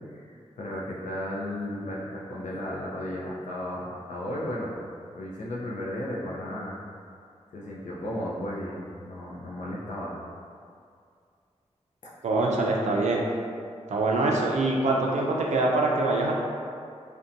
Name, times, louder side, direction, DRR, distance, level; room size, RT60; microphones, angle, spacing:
voice 1, 0.1-4.7 5.1-6.8 7.5-10.2 12.0-12.1, left 1 dB, 90° left, -5 dB, 0.5 m, -34 dB
voice 2, 12.2-13.2 13.9-16.3, right 2 dB, 75° right, -1 dB, 0.4 m, -24 dB
2.7 x 2.1 x 2.5 m, 2.3 s
wide cardioid pair, 115°, 12 cm